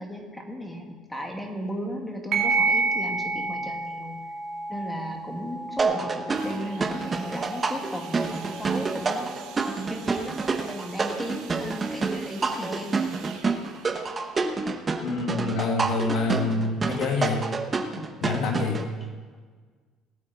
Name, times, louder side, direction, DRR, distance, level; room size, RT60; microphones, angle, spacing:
voice 1, 0.0-4.2 4.7-13.2, equal, 5° left, 2 dB, 2.0 m, -36 dB
sound 1, 2.3-11.3, right 3 dB, 50° right, 2.3 m, -31 dB
sound 2, 5.8-18.8, right 4 dB, 25° right, 1.0 m, -28 dB
sound 3, 6.3-16.0 16.7-16.8, right 8 dB, 90° right, 1.5 m, -47 dB
voice 2, 15.0-17.4 18.2-18.8, left 3 dB, 70° left, 2 dB, 1.8 m, -26 dB
18.5 x 8.5 x 4.1 m, 1.5 s
cardioid pair, 120°, 0 cm